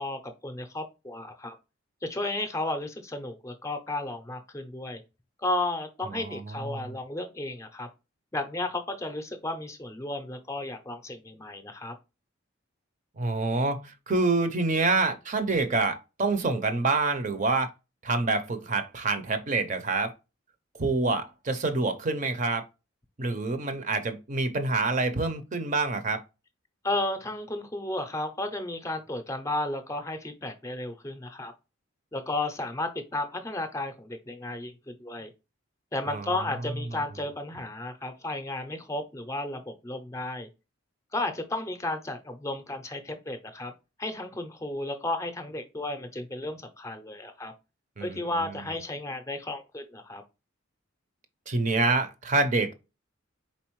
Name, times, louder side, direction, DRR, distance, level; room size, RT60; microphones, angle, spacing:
voice 1, 0.0-1.6 2.0-5.0 5.4-7.9 8.3-11.9 26.8-31.5 32.1-35.3 35.9-40.5 41.1-43.7 44.0-47.5 48.0-50.2, left 2 dB, 15° left, 0.5 m, -33 dB
voice 2, 6.1-6.8 13.2-17.7 18.0-20.1 20.8-22.6 23.2-26.2 36.1-36.3 48.0-48.3 51.5-52.7, right 3 dB, 40° right, 0.6 m, -27 dB
4.3 x 3.9 x 3.0 m
head